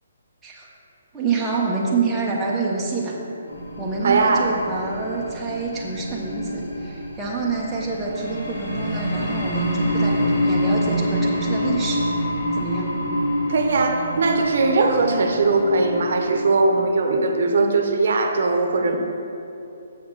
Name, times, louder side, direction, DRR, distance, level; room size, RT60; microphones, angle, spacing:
voice 1, 1.1-3.2 3.8-12.0 12.5-12.9, right 4 dB, 5° right, -6 dB, 0.6 m, -27 dB
sound 1, 3.5-16.4, equal, 80° left, 1.7 m, -26 dB
voice 2, 4.0-4.5 13.5-19.0, right 3 dB, 55° right, 4 dB, 0.7 m, -20 dB
7.0 x 4.0 x 6.4 m, 2.8 s
hypercardioid pair, 170°, 0 cm